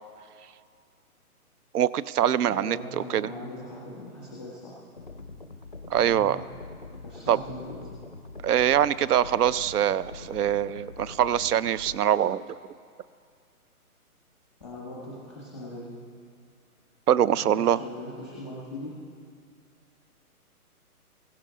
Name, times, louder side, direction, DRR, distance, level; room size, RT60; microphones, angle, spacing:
voice 1, 1.7-2.8 3.1-3.3 5.9-6.4 7.3-7.4 8.4-12.6 17.1-17.8, right 10 dB, 80° right, 18 dB, 0.6 m, -23 dB
voice 2, 2.5-4.8 6.0-6.4 7.0-7.8 14.6-15.9 17.3-18.9, left 1 dB, 5° right, -5 dB, 0.7 m, -40 dB
sound 1, 5.0-12.0, left 3 dB, 35° left, 0.4 m, -44 dB
16.0 x 15.5 x 3.8 m, 2.2 s
hypercardioid pair, 170°, 45 cm